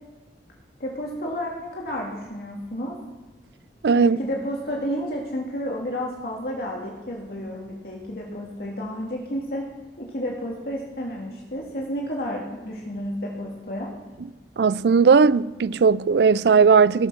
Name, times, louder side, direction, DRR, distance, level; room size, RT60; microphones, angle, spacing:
voice 1, 0.8-2.9 3.9-9.7 10.0-13.9, equal, 60° left, 2.2 m, -31 dB
voice 2, 3.8-4.2 14.6-17.1, right 5 dB, 65° right, 0.4 m, -17 dB
18.0 x 6.4 x 6.2 m
head